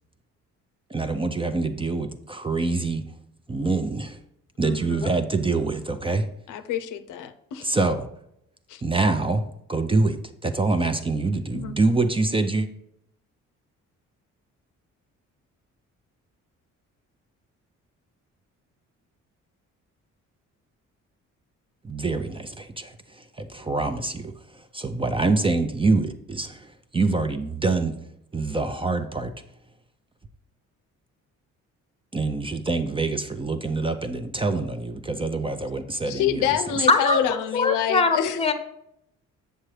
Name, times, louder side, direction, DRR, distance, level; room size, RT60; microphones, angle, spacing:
voice 1, 0.9-3.0 3.5-4.2 4.6-6.3 7.6-8.1 8.8-9.4 9.7-10.2 10.4-12.7 21.8-24.3 24.7-28.0 28.3-29.3 32.1-36.4, right 3 dB, 20° right, 8 dB, 0.5 m, -25 dB
voice 2, 4.6-5.1 6.5-7.8 8.7-8.8 11.5-11.8 36.1-38.4, left 10 dB, 85° left, 9 dB, 0.6 m, -27 dB
voice 3, 36.9-37.2 37.5-38.5, left 3 dB, 20° left, 8 dB, 0.8 m, -21 dB
7.5 x 6.7 x 3.2 m, 0.77 s
cardioid pair, 90°, 30 cm